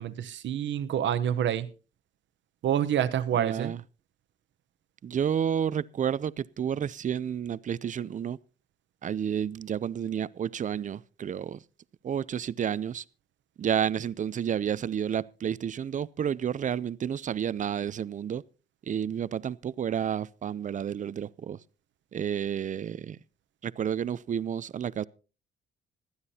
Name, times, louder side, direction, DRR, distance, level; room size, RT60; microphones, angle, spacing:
voice 1, 0.0-1.7 2.6-3.7, right 10 dB, 70° right, 0.9 m, -27 dB
voice 2, 3.3-3.8 5.0-8.4 9.0-11.6 12.0-13.0 13.6-18.4 18.9-21.6 22.1-23.2 23.6-25.1, right 8 dB, 40° right, 0.5 m, -30 dB
25.5 x 9.6 x 2.8 m
cardioid pair, 90°, 20 cm